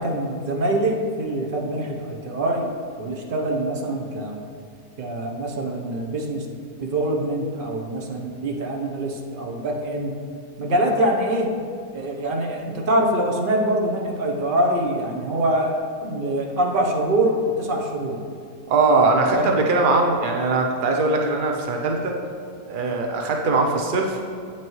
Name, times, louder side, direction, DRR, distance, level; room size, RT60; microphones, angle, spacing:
voice 1, 0.0-2.7 3.0-4.4 5.0-6.5 6.8-10.1 10.6-11.5 11.9-18.2 19.3-19.5, right 1 dB, 45° right, 0 dB, 0.7 m, -24 dB
voice 2, 18.7-22.2 22.7-24.2, right 3 dB, 80° right, 1 dB, 0.4 m, -21 dB
8.6 x 5.9 x 3.0 m, 2.3 s
omnidirectional pair, 1.7 m